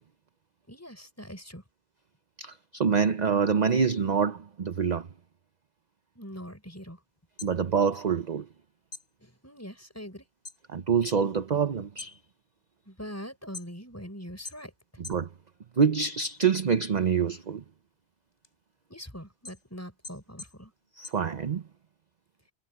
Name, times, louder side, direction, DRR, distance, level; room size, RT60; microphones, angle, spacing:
voice 1, 0.7-1.6 6.2-7.0 9.2-10.3 12.9-14.7 18.9-20.7, equal, 15° left, 5.7 m, -42 dB
voice 2, 2.4-5.1 7.4-8.5 10.7-12.2 15.1-15.3 15.8-17.6 21.0-21.6, right 6 dB, 45° right, 0.8 m, -26 dB
sound 1, 7.2-8.6 8.9-10.7 11.0-11.5 11.8-14.0 14.4-15.3 15.7-16.9 17.3-21.9, left 3 dB, 55° left, 5.6 m, -46 dB
omnidirectional pair, 1.1 m